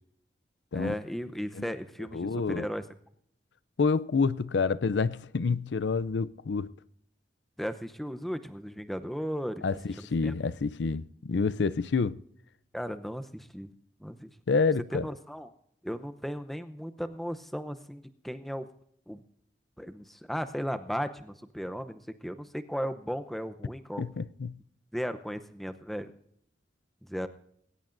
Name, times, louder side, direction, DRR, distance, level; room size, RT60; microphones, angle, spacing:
voice 1, 0.7-2.8 7.6-9.7 10.0-10.3 12.7-13.7 14.0-14.3 14.9-15.5 15.8-18.7 19.1-19.2 19.8-24.0 24.9-26.1 27.1-27.3, equal, ahead, 0.7 m, -36 dB
voice 2, 2.1-2.7 3.8-6.7 9.6-12.2 14.5-15.1 24.0-24.6, left 4 dB, 75° left, 0.5 m, -28 dB
20.0 x 17.5 x 2.6 m
head